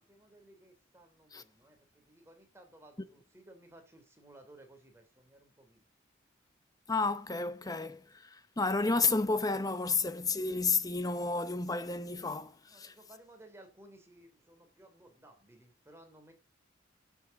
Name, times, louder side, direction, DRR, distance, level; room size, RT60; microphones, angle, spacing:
voice 1, 0.0-5.9 12.7-16.3, right 1 dB, 15° right, 3.0 m, -58 dB
voice 2, 6.9-12.9, left 4 dB, 20° left, 0.8 m, -31 dB
12.0 x 7.3 x 7.1 m
head